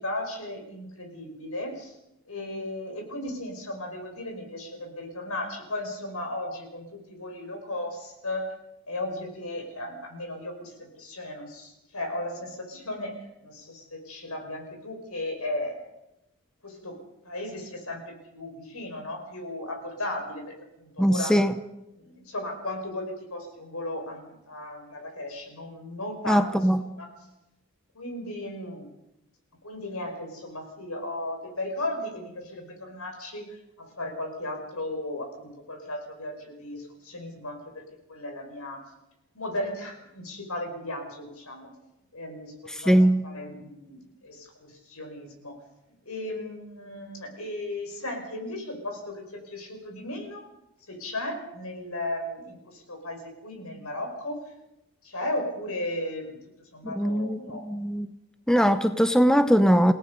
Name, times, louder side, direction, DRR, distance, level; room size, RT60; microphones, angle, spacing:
voice 1, 0.0-1.9 2.3-8.5 8.9-15.8 16.6-20.5 20.8-21.4 22.0-27.1 27.9-28.9 29.6-37.8 38.1-38.8 39.3-41.7 42.1-43.0 43.2-45.6 46.1-50.5 50.9-54.4 55.0-57.6, left 1 dB, 80° left, 5.8 m, -36 dB
voice 2, 21.0-21.5 26.3-26.8 42.7-43.2 56.8-57.4 57.6-58.1 58.5-59.9, equal, 5° left, 0.7 m, -21 dB
28.5 x 17.5 x 5.4 m
head